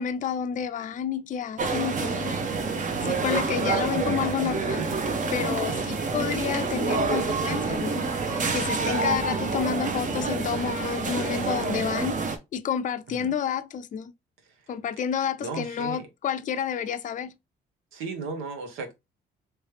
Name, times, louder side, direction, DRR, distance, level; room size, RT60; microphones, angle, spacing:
voice 1, 0.0-2.4 3.0-4.9 5.3-8.0 8.5-12.2 12.5-14.1 14.7-17.3, left 8 dB, 40° left, 0.4 m, -30 dB
sound 1, 1.6-12.4, right 4 dB, 40° right, 0.8 m, -27 dB
voice 2, 3.6-4.3 8.8-9.1 13.1-13.3 14.5-14.6 15.4-16.0 17.9-18.9, right 4 dB, 90° right, 1.1 m, -35 dB
3.2 x 3.1 x 3.1 m
cardioid pair, 90°, 20 cm